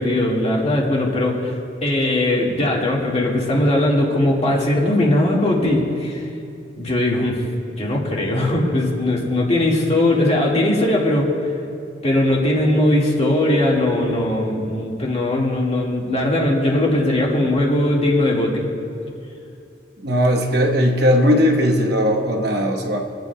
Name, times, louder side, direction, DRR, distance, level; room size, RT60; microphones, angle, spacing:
voice 1, 0.0-1.5 1.8-6.2 6.8-7.4 7.7-11.3 12.0-18.6, left 1 dB, 35° left, -3 dB, 1.9 m, -19 dB
voice 2, 20.0-23.0, equal, 60° right, 2 dB, 1.1 m, -18 dB
24.5 x 9.3 x 2.3 m, 2.6 s
head